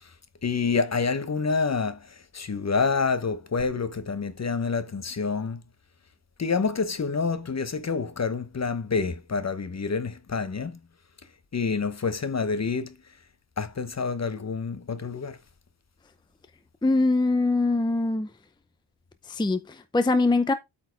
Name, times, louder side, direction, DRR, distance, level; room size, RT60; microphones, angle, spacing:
voice 1, 0.4-5.6 6.4-10.8 11.5-13.0 13.6-15.4, left 5 dB, 35° left, 1.0 m, -27 dB
voice 2, 16.8-18.3 19.3-20.5, left 2 dB, 10° left, 0.6 m, -23 dB
8.4 x 4.4 x 4.6 m
wide cardioid pair, 115°, 49 cm